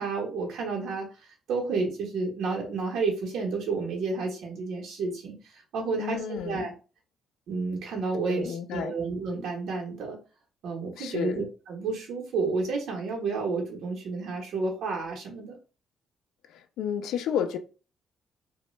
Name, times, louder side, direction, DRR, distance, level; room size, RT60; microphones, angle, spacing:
voice 1, 0.0-6.7 7.5-10.2 10.6-15.6, right 4 dB, 75° right, 0.8 m, -31 dB
voice 2, 6.0-6.7 8.3-8.9 11.0-11.4 16.5-17.6, left 8 dB, 85° left, 0.3 m, -31 dB
3.0 x 2.1 x 3.0 m
cardioid pair, 150°, 0 cm